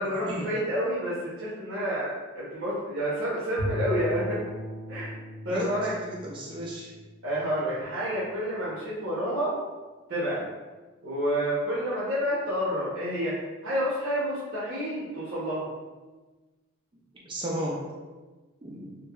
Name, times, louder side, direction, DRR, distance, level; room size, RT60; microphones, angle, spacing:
voice 1, 0.0-4.4 4.9-5.1 5.4-5.9 7.2-9.5 10.1-10.4 11.0-13.4 13.6-15.7, equal, 65° right, -9 dB, 0.8 m, -29 dB
Bowed string instrument, 3.6-7.8, equal, 75° left, 0.8 m, -37 dB
voice 2, 5.5-6.9 17.3-17.8 18.6-19.0, equal, 25° right, -3 dB, 0.4 m, -34 dB
3.2 x 2.7 x 2.3 m, 1.2 s
head